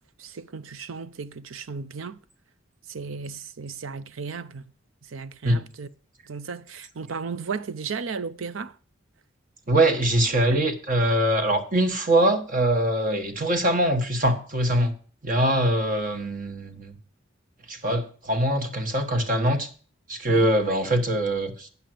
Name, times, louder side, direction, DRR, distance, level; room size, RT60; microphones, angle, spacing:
voice 1, 0.2-2.2 2.9-4.7 5.1-5.9 6.3-8.7 10.5-10.6 20.3-20.5, right 5 dB, 90° right, 0.6 m, -35 dB
voice 2, 9.7-14.9 15.2-17.0 17.7-19.7 20.1-21.7, right 1 dB, 45° right, 1.3 m, -23 dB
10.0 x 5.7 x 7.7 m
head